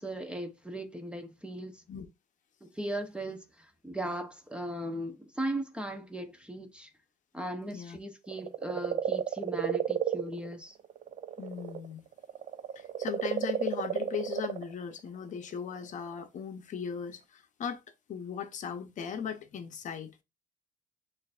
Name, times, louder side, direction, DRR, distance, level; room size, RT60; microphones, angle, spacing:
voice 1, 0.0-1.8 2.6-6.9 7.3-10.8, right 1 dB, 5° right, 0.7 m, -38 dB
sound 1, 8.3-11.9 12.1-14.7 15.8-15.9, right 10 dB, 45° right, 0.4 m, -32 dB
voice 2, 11.4-12.1 12.8-17.8 18.1-20.1, left 7 dB, 50° left, 0.7 m, -38 dB
6.3 x 2.6 x 2.4 m
cardioid pair, 110°, 17 cm